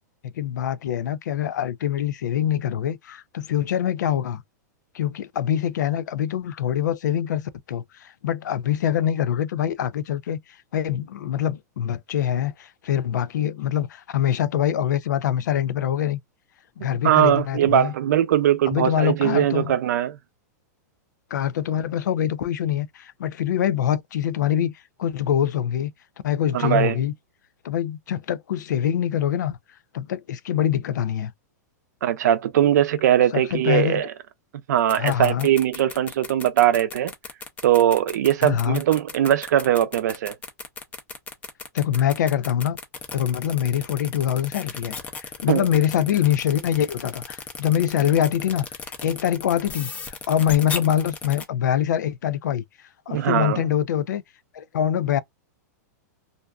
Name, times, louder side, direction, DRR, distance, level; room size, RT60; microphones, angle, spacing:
voice 1, 0.3-4.4 4.9-10.4 10.7-16.2 16.8-17.9 18.7-19.7 21.3-24.7 25.0-25.9 26.2-27.1 27.6-29.6 29.9-31.3 33.3-34.0 34.9-35.5 38.4-38.8 41.7-42.8 43.1-48.7 49.0-52.6 53.1-54.2 54.5-55.2, left 10 dB, 90° left, 0.4 m, -24 dB
voice 2, 17.0-20.2 26.5-27.0 32.0-34.1 34.7-37.1 37.6-40.4 45.5-45.7 53.1-53.6, right 11 dB, 70° right, 0.5 m, -20 dB
sound 1, 34.8-51.4, left 5 dB, 15° left, 0.5 m, -35 dB
2.5 x 2.2 x 2.3 m
supercardioid pair, 155°, 10 cm